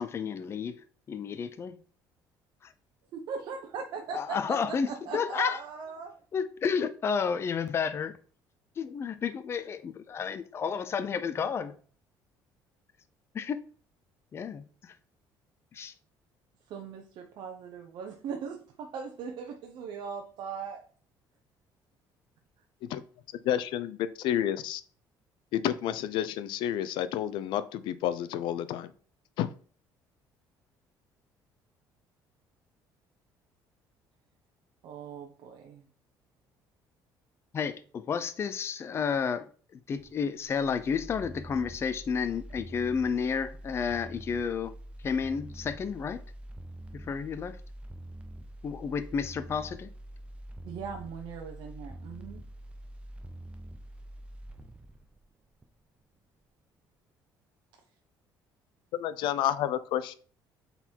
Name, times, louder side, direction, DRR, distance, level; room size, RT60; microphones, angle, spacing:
voice 1, 0.0-1.8 4.1-5.6 6.3-8.2 8.8-11.8 13.3-13.7 14.3-14.9 15.7-15.9 37.5-44.7 45.0-46.2 46.9-47.6 48.6-49.9, left 6 dB, 30° left, 0.6 m, -31 dB
voice 2, 3.3-6.1 16.7-20.8 34.8-35.8 50.6-52.4, right 6 dB, 65° right, 1.0 m, -39 dB
voice 3, 23.4-24.8 25.5-28.9 29.4-29.5 58.9-60.1, left 11 dB, 75° left, 0.7 m, -30 dB
sound 1, 40.0-56.1 56.4-56.5, right 1 dB, 15° right, 0.9 m, -45 dB
8.1 x 4.1 x 4.5 m
cardioid pair, 150°, 8 cm